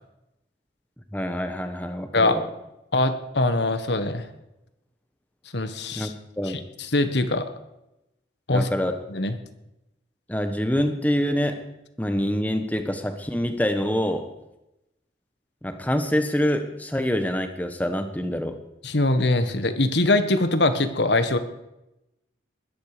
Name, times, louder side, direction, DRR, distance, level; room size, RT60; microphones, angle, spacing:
voice 1, 1.1-2.5 5.9-6.6 8.5-9.0 10.3-11.7 12.0-14.3 15.6-18.5, equal, 10° left, 7 dB, 1.2 m, -26 dB
voice 2, 2.9-4.3 5.5-6.1 6.9-7.5 8.5-8.7 9.1-9.3 18.8-21.4, left 2 dB, 70° left, 9 dB, 1.4 m, -22 dB
21.0 x 10.5 x 5.1 m, 0.91 s
head